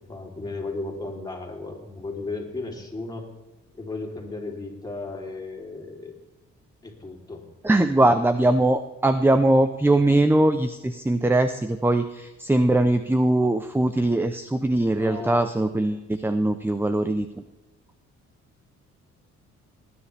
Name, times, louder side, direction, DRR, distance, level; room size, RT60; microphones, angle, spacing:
voice 1, 0.1-3.3 3.7-6.2 6.8-7.5 14.9-15.5, left 3 dB, 15° left, -1 dB, 3.6 m, -35 dB
voice 2, 7.6-17.4, right 1 dB, 5° right, 9 dB, 0.7 m, -21 dB
19.5 x 9.9 x 3.5 m, 1.1 s
cardioid pair, 90°, 30 cm